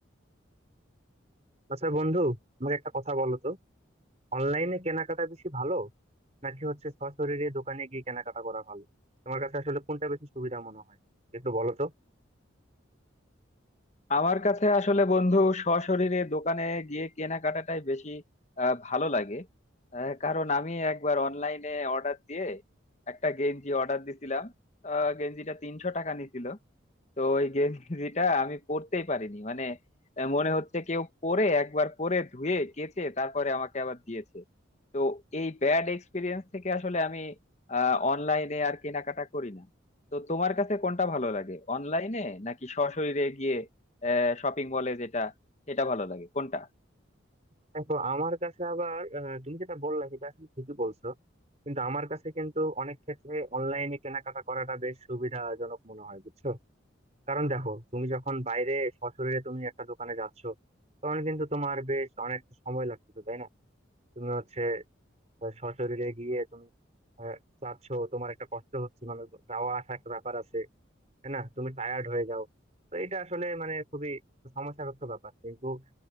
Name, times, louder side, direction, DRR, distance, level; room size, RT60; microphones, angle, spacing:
voice 1, 1.7-3.6 4.3-5.9 6.4-8.9 9.3-11.0 11.3-11.9 47.7-51.2 51.7-56.6 57.3-60.6 61.0-63.5 64.2-64.8 65.4-66.7 67.2-70.7 71.2-72.5 72.9-74.2 74.6-75.8, right 1 dB, 35° right, 5.2 m, -33 dB
voice 2, 14.1-18.2 18.6-19.5 19.9-22.6 23.1-24.5 24.8-26.6 27.2-29.8 30.2-34.4 34.9-37.3 37.7-39.7 40.1-43.7 44.0-45.3 45.7-46.7, left 2 dB, 35° left, 1.1 m, -29 dB
open air
head